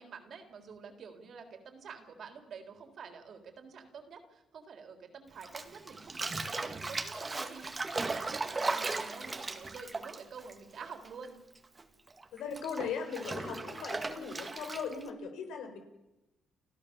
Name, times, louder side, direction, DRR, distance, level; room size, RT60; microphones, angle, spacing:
voice 1, 0.0-11.4, right 5 dB, 60° right, 6 dB, 3.8 m, -48 dB
Bathtub (filling or washing), 5.4-11.3 11.5-15.1, right 3 dB, 25° right, 2.1 m, -37 dB
voice 2, 12.3-15.8, left 6 dB, 85° left, 6 dB, 4.4 m, -38 dB
30.0 x 14.0 x 7.1 m, 0.95 s
cardioid pair, 90°, 0 cm